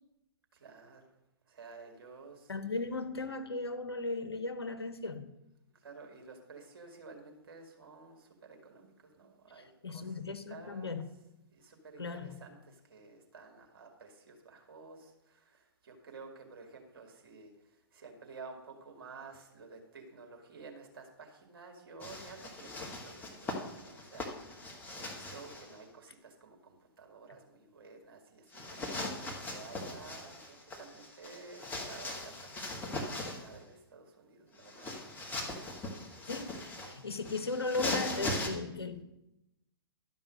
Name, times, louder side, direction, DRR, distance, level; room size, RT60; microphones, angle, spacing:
voice 1, 0.5-1.1 1.5-2.5 5.7-10.2 10.5-11.0 11.5-34.9, right 4 dB, 60° right, 3 dB, 2.3 m, -52 dB
voice 2, 2.5-5.3 9.8-11.0 12.0-12.4 36.3-39.0, left 3 dB, 80° left, 9 dB, 1.0 m, -36 dB
sound 1, 22.0-25.7 28.5-33.6 34.6-38.5, left 2 dB, 15° left, 1.5 m, -40 dB
11.5 x 5.5 x 6.3 m, 0.89 s
figure-of-eight pair, 115°, 13 cm